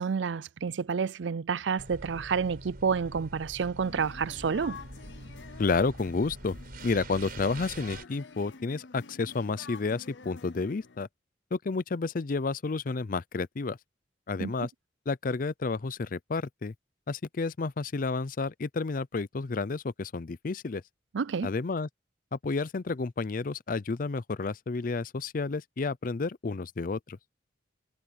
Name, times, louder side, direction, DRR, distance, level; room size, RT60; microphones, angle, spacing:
voice 1, 0.0-4.8 14.4-14.5 21.1-21.5, right 6 dB, 80° right, 0.5 m, -29 dB
sound 1, 1.8-8.0, right 2 dB, 55° right, 5.2 m, -45 dB
sound 2, 3.8-11.0, left 4 dB, 75° left, 0.8 m, -49 dB
voice 2, 5.6-6.5 6.8-11.1 11.5-13.8 14.3-14.7 15.1-16.7 17.1-20.8 21.4-21.9 22.3-27.2, left 4 dB, 45° left, 0.5 m, -31 dB
head